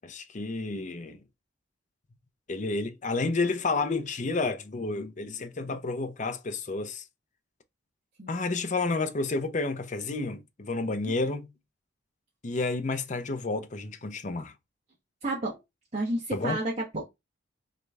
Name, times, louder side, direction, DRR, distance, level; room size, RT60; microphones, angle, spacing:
voice 1, 0.0-1.2 2.5-7.0 8.3-11.5 12.4-14.5 16.3-16.6, left 3 dB, 40° left, 0.6 m, -30 dB
voice 2, 15.2-15.6 15.9-17.1, right 2 dB, 35° right, 1.3 m, -31 dB
3.7 x 3.3 x 3.3 m
head